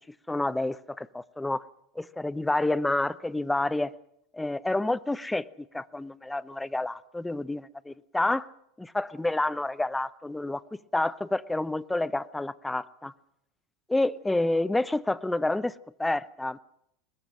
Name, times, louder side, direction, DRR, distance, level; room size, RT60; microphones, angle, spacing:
voice 1, 0.3-1.6 2.0-3.9 4.3-5.5 5.7-8.5 8.8-13.1 13.9-16.6, left 2 dB, 5° left, 0.7 m, -29 dB
21.5 x 20.5 x 6.3 m
supercardioid pair, 115°, 0 cm